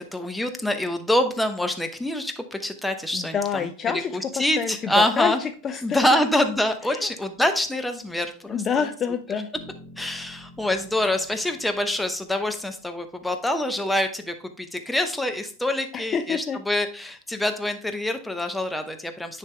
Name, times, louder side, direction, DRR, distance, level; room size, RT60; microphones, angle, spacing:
voice 1, 0.0-3.7 3.9-5.4 5.8-8.8 10.0-19.4, left 1 dB, 5° left, 6 dB, 0.8 m, -26 dB
voice 2, 3.1-6.2 6.8-7.1 8.5-9.5 15.9-16.6, left 7 dB, 30° left, 7 dB, 0.5 m, -28 dB
sound 1, 9.6-13.5, left 2 dB, 45° left, 1.4 m, -49 dB
9.6 x 3.4 x 3.3 m, 0.43 s
hypercardioid pair, 95°, 0 cm